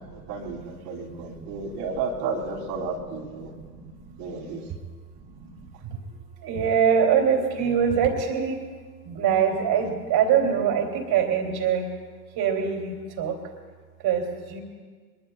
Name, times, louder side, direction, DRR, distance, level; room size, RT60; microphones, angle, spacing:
voice 1, 0.1-3.5 4.2-4.6, right 4 dB, 65° right, -1 dB, 3.2 m, -32 dB
voice 2, 1.1-1.8 3.5-4.4 5.1-6.1 6.4-8.6 9.0-11.9 12.3-13.4 14.0-14.6, right 7 dB, 45° right, 4 dB, 2.9 m, -25 dB
23.0 x 21.5 x 2.3 m, 1.5 s
figure-of-eight pair, 70°, 50 cm